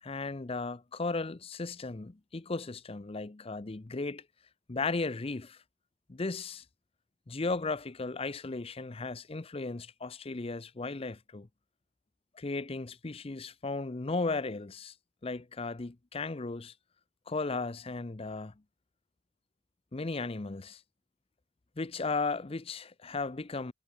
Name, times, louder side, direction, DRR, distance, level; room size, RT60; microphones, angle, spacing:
voice 1, 0.0-4.2 4.7-5.6 6.1-6.6 7.3-11.5 12.3-14.9 15.2-16.7 17.3-18.5 19.9-20.8 21.8-23.7, left 3 dB, 25° left, 0.6 m, -35 dB
head